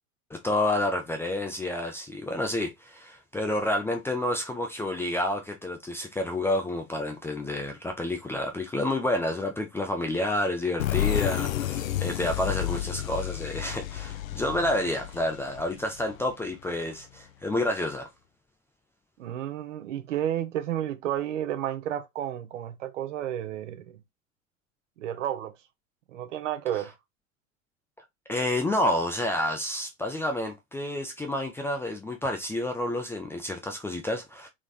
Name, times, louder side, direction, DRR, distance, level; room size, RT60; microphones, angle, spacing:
voice 1, 0.3-18.1 28.3-34.5, left 1 dB, 5° left, 0.5 m, -29 dB
sound 1, 10.8-16.3, left 12 dB, 70° left, 0.5 m, -31 dB
voice 2, 19.2-24.0 25.0-25.6 26.1-26.9, right 11 dB, 60° right, 0.9 m, -31 dB
3.7 x 3.5 x 2.3 m
figure-of-eight pair, 90°, 42 cm